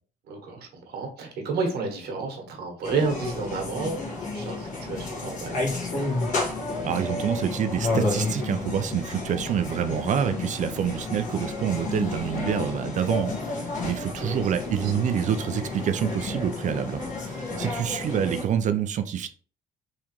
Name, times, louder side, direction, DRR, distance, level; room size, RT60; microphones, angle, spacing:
voice 1, 0.3-6.1 14.2-14.5 14.8-15.1, right 4 dB, 70° right, 3 dB, 1.3 m, -31 dB
sound 1, 2.8-18.4, left 3 dB, 45° left, 1.5 m, -31 dB
voice 2, 6.8-19.3, right 8 dB, 45° right, 9 dB, 0.5 m, -27 dB
3.7 x 3.3 x 3.0 m, 0.42 s
cardioid pair, 110°, 17 cm